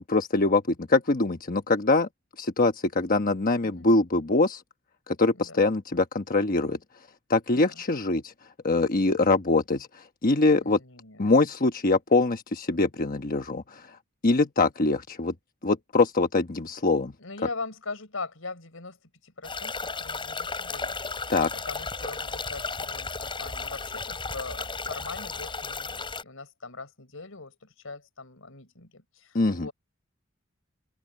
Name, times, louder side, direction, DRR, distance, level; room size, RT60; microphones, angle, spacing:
voice 1, 0.1-2.1 2.4-4.6 5.1-6.8 7.3-8.3 8.6-9.9 10.2-10.8 11.2-13.8 14.2-15.3 15.6-17.1 21.3-21.5 29.3-29.7, left 3 dB, 45° left, 1.1 m, -23 dB
voice 2, 5.3-5.7 7.5-7.8 10.5-11.3 17.2-19.0 19.2-21.0 21.7-29.7, left 3 dB, 85° left, 4.4 m, -41 dB
sound 1, 19.4-26.2, left 4 dB, 25° left, 5.9 m, -34 dB
open air
head